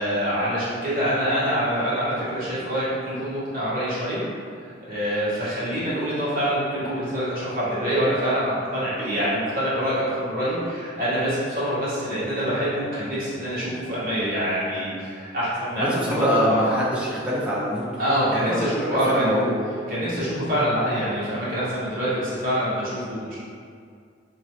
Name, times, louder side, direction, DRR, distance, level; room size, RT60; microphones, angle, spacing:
voice 1, 0.0-4.2 4.6-16.6 18.0-19.4 19.9-23.3, equal, 50° right, -11 dB, 1.5 m, -25 dB
voice 2, 15.8-17.8 18.3-19.5, equal, 5° right, -7 dB, 0.7 m, -24 dB
3.6 x 3.1 x 3.0 m, 2.2 s
head